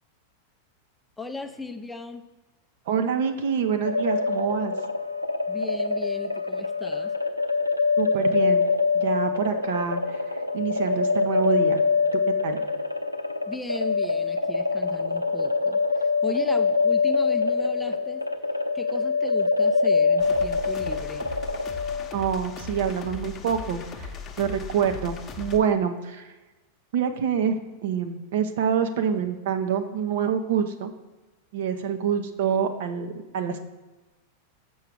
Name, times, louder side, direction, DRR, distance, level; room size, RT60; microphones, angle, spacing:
voice 1, 1.2-2.2 5.5-7.1 13.5-18.2 18.7-21.3, left 3 dB, 5° left, 7 dB, 0.6 m, -37 dB
voice 2, 2.9-4.7 8.0-8.7 8.9-11.8 12.3-12.6 22.1-24.1 24.4-26.3 26.9-30.9 31.5-33.6, right 7 dB, 55° right, 7 dB, 0.7 m, -26 dB
sound 1, 3.8-22.3, left 4 dB, 90° left, 0.5 m, -24 dB
sound 2, 20.2-25.6, left 5 dB, 25° left, 0.9 m, -38 dB
6.6 x 5.4 x 6.2 m, 1.2 s
figure-of-eight pair, 90°, 0 cm